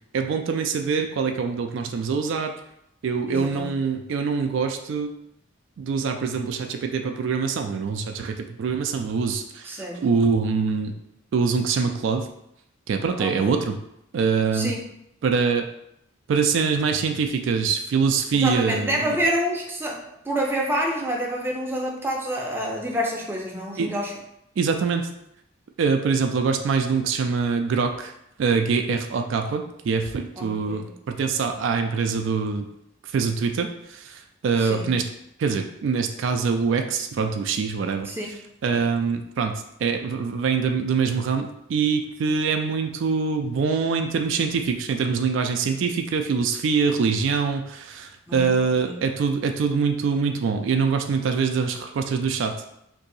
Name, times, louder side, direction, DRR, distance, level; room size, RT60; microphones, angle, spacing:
voice 1, 0.1-2.5 3.0-5.1 5.8-10.9 11.3-12.3 12.9-13.8 14.1-14.7 15.2-15.6 16.3-19.2 23.8-23.9 24.6-25.1 25.8-28.1 28.4-32.7 33.0-35.1 35.4-38.1 38.6-52.7, right 5 dB, 70° right, 5 dB, 0.3 m, -24 dB
voice 2, 3.3-3.7 9.6-10.1 13.2-13.5 14.5-14.8 18.3-24.1 30.4-31.0 34.6-35.0 38.1-38.4 48.3-49.0, equal, 10° right, -2 dB, 0.5 m, -28 dB
2.7 x 2.6 x 3.9 m, 0.79 s
head